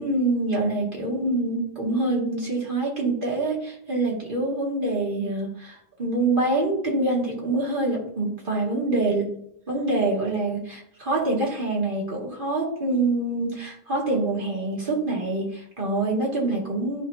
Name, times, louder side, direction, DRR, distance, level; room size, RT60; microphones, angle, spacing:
voice 1, 0.0-9.4 9.7-17.0, right 2 dB, 55° right, -3 dB, 2.1 m, -25 dB
11.5 x 4.4 x 2.6 m, 0.71 s
omnidirectional pair, 1.1 m